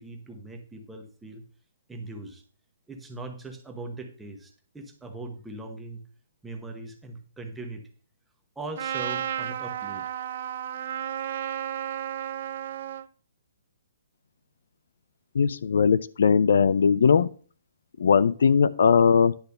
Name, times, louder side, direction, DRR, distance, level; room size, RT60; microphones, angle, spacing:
voice 1, 0.0-1.4 1.9-2.4 2.9-6.0 6.4-7.8 8.6-10.1, right 2 dB, 5° right, 3 dB, 1.0 m, -40 dB
Trumpet, 8.8-13.1, right 10 dB, 45° right, 0.6 m, -32 dB
voice 2, 15.3-17.3 18.0-19.3, left 6 dB, 65° left, 15 dB, 0.5 m, -19 dB
10.5 x 4.1 x 6.6 m, 0.40 s
hypercardioid pair, 170°, 0 cm